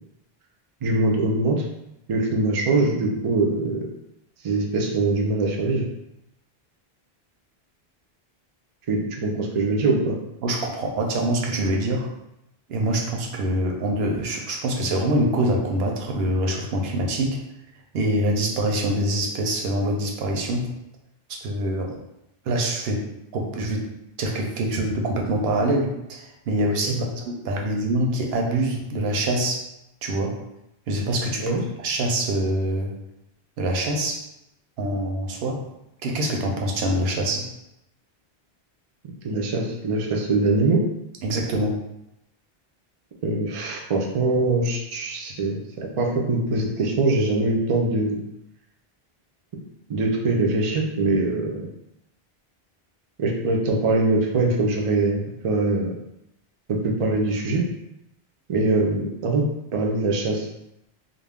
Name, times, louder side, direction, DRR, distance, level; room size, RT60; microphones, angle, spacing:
voice 1, 0.8-1.6 2.1-3.8 4.4-5.9 8.9-10.2 26.8-27.1 31.4-31.6 39.2-40.8 43.2-48.2 49.9-51.7 53.2-55.9 56.7-57.6 58.5-59.5 59.7-60.5, right 2 dB, 55° right, 0 dB, 0.3 m, -23 dB
voice 2, 10.4-12.1 12.7-17.4 17.9-20.7 21.4-22.0 22.5-23.9 24.2-29.6 30.0-30.3 30.9-33.0 33.6-34.2 34.8-35.7 36.0-37.5 41.2-41.8, right 1 dB, 75° right, 1 dB, 0.8 m, -25 dB
2.4 x 2.0 x 3.4 m, 0.85 s
omnidirectional pair, 1.0 m